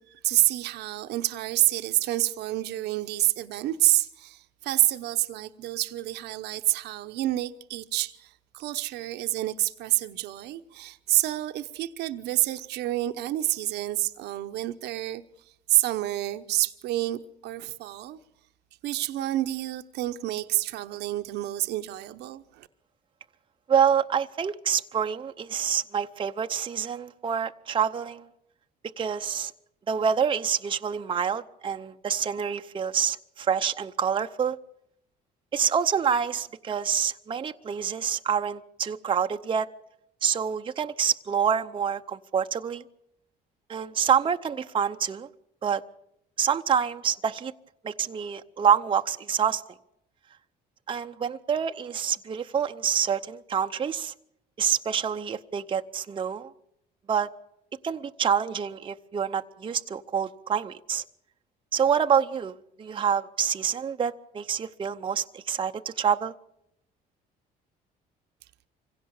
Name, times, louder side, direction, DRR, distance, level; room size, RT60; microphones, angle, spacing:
voice 1, 0.1-15.2 15.7-18.2 18.8-22.7, right 16 dB, 80° right, 0.9 m, -28 dB
voice 2, 23.7-28.3 29.0-29.5 29.9-34.6 35.5-39.7 40.2-42.8 43.7-45.3 45.6-45.8 46.4-47.5 47.8-49.6 50.9-54.1 54.6-56.5 57.1-57.3 57.8-61.0 61.7-66.3, right 7 dB, 30° right, 0.7 m, -27 dB
25.0 x 16.5 x 7.1 m
cardioid pair, 110°, 17 cm